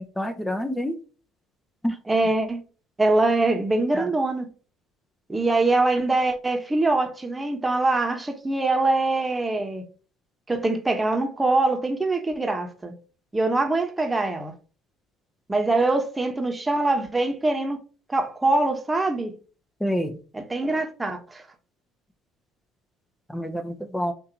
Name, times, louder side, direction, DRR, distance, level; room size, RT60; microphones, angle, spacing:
voice 1, 0.2-1.0 1.8-2.0 3.9-4.1 19.8-20.2 23.3-24.1, equal, 5° left, 0.7 m, -27 dB
voice 2, 2.1-2.6 3.0-4.5 5.3-9.8 10.5-12.9 13.3-14.5 15.5-17.8 18.1-19.3 20.3-21.4, right 2 dB, 15° right, 1.1 m, -23 dB
5.8 x 2.8 x 2.8 m
supercardioid pair, 80°, 0 cm